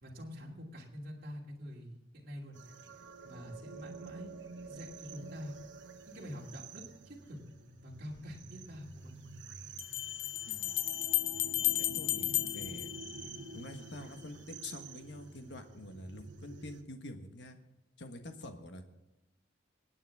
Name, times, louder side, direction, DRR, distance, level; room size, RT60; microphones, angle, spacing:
voice 1, 0.0-2.6 3.2-4.3 4.6-5.5 6.1-7.4 7.8-9.1, equal, 50° right, -3 dB, 2.7 m, -46 dB
sound 1, 2.5-16.8, right 3 dB, 70° right, 1.3 m, -49 dB
sound 2, 8.2-8.3 9.8-13.8, left 16 dB, 85° left, 0.6 m, -34 dB
voice 2, 11.8-12.9 13.5-17.6 18.0-18.9, left 1 dB, 65° left, 6 dB, 1.4 m, -47 dB
26.5 x 8.9 x 3.6 m, 0.97 s
head